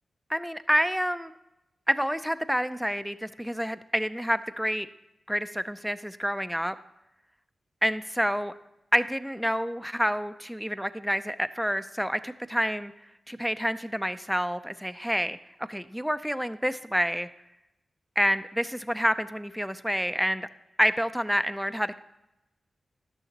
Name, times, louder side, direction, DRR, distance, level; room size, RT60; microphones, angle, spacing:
voice 1, 0.3-1.3 1.9-4.9 5.3-6.7 7.8-8.5 8.9-12.9 13.3-15.4 15.7-17.3 18.2-20.5 20.8-22.0, equal, ahead, 11 dB, 0.5 m, -28 dB
12.0 x 6.3 x 2.9 m, 0.90 s
cardioid pair, 40°, 0 cm